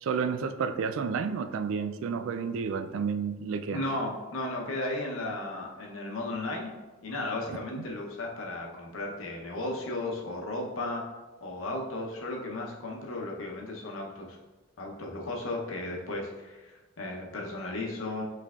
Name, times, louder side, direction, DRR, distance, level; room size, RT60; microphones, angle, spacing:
voice 1, 0.0-3.8 7.8-7.9, right 5 dB, 75° right, 9 dB, 0.3 m, -31 dB
voice 2, 3.7-6.7 7.0-11.1 11.4-14.4 14.8-18.3, left 2 dB, 85° left, 0 dB, 0.8 m, -35 dB
5.5 x 3.3 x 2.4 m, 1.2 s
head